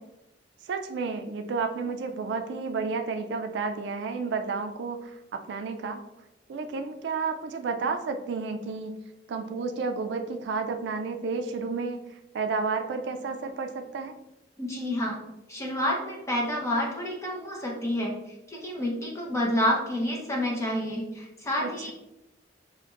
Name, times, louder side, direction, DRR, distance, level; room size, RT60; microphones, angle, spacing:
voice 1, 0.6-6.0 6.5-8.9 9.3-12.1 12.3-14.1 21.6-21.9, right 4 dB, 70° right, 6 dB, 0.3 m, -31 dB
voice 2, 14.6-15.2 15.5-18.1 18.5-21.9, left 1 dB, 15° left, -2 dB, 0.8 m, -29 dB
5.0 x 2.5 x 2.4 m, 0.93 s
head